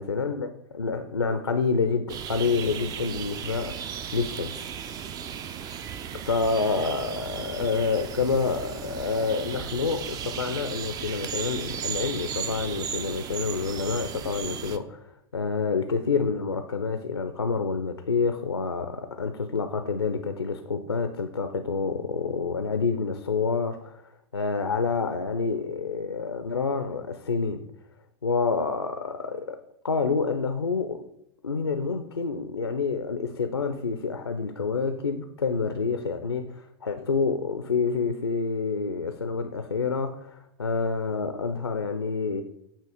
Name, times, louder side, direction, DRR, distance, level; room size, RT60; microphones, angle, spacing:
voice 1, 0.0-4.6 6.2-24.0 24.3-27.6 28.2-31.0 31.4-42.4, left 4 dB, 90° left, 8 dB, 0.5 m, -28 dB
sound 1, 2.1-14.8, right 8 dB, 30° right, 0.4 m, -35 dB
8.4 x 2.9 x 4.9 m, 0.79 s
figure-of-eight pair, 95°, 14 cm